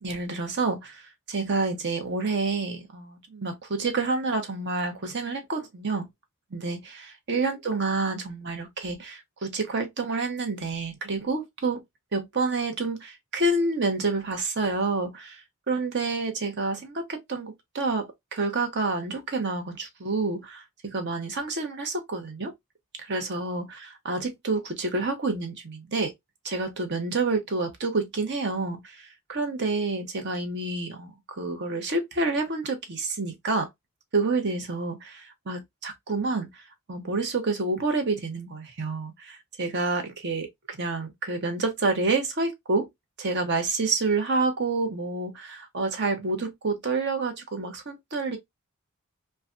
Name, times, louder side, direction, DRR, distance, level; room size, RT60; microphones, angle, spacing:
voice 1, 0.0-6.1 6.5-11.8 12.1-22.5 23.0-26.1 26.4-33.7 34.1-36.6 36.9-42.9 43.2-48.4, right 3 dB, 50° right, 0.9 m, -28 dB
3.2 x 2.3 x 2.5 m
head